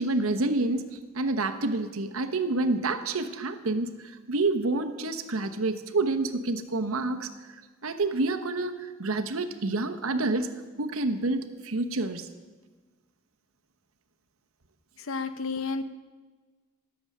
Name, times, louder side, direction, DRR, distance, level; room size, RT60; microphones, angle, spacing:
voice 1, 0.0-7.5 7.8-10.5 10.8-12.3, right 2 dB, 85° right, 8 dB, 1.0 m, -28 dB
voice 2, 15.0-15.8, left 4 dB, 75° left, 11 dB, 0.8 m, -31 dB
18.5 x 7.1 x 6.5 m, 1.3 s
head